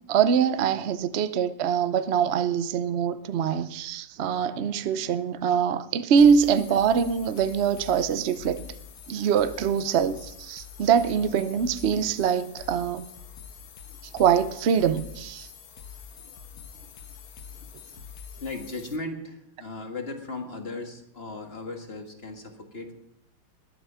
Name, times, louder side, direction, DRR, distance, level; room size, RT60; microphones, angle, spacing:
voice 1, 0.1-8.7 9.1-13.1 14.1-15.5, right 7 dB, 65° right, 0.6 m, -23 dB
sound 1, 6.2-19.0, left 7 dB, 60° left, 1.4 m, -45 dB
voice 2, 13.8-14.2 16.2-18.0 18.3-22.9, left 2 dB, 35° left, 1.8 m, -38 dB
21.0 x 8.6 x 5.6 m
omnidirectional pair, 2.0 m